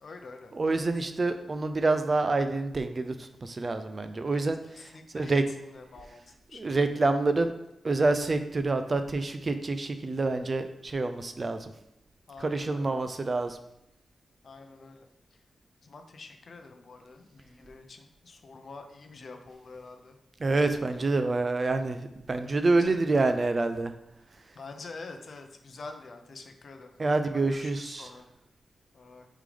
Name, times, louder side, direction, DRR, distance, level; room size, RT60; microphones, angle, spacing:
voice 1, 0.0-1.1 4.3-4.5 4.7-6.2 6.5-6.7 12.3-13.0 14.4-15.1 15.8-20.2 20.8-21.0 22.8-23.4 24.5-26.9 27.3-28.3 28.9-29.3, left 3 dB, 45° left, 6 dB, 0.6 m, -47 dB
voice 2, 0.5-3.1 3.4-4.6 5.1-5.4 6.5-7.5 7.8-11.7 12.4-13.6 20.4-23.9 27.0-28.1, right 3 dB, 30° right, 8 dB, 0.4 m, -27 dB
8.2 x 3.7 x 3.4 m, 0.84 s
wide cardioid pair, 165°, 0 cm